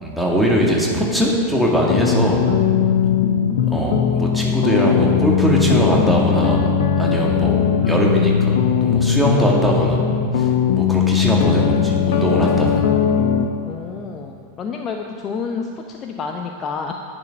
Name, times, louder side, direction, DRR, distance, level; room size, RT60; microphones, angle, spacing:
voice 1, 0.0-2.4 3.7-10.0 10.3-12.8, equal, ahead, -3 dB, 2.2 m, -21 dB
sound 1, 1.9-13.5, left 7 dB, 55° left, 0.9 m, -19 dB
voice 2, 13.6-16.9, left 5 dB, 30° left, 3 dB, 0.7 m, -29 dB
10.5 x 10.0 x 5.4 m, 2.3 s
figure-of-eight pair, 90°, 0 cm